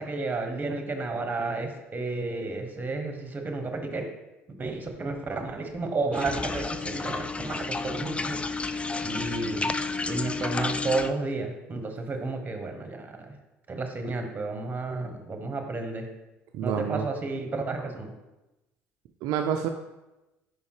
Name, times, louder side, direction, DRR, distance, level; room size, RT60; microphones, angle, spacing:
voice 1, 0.0-4.0 4.6-8.4 9.0-9.8 10.1-13.4 13.7-16.1 16.6-18.1, right 3 dB, 25° right, 5 dB, 1.3 m, -32 dB
sound 1, 6.1-11.1, left 3 dB, 15° left, 0.4 m, -31 dB
voice 2, 16.5-17.1 19.2-19.7, right 8 dB, 65° right, 5 dB, 0.4 m, -28 dB
5.3 x 5.0 x 4.8 m, 1.0 s
hypercardioid pair, 70°, 7 cm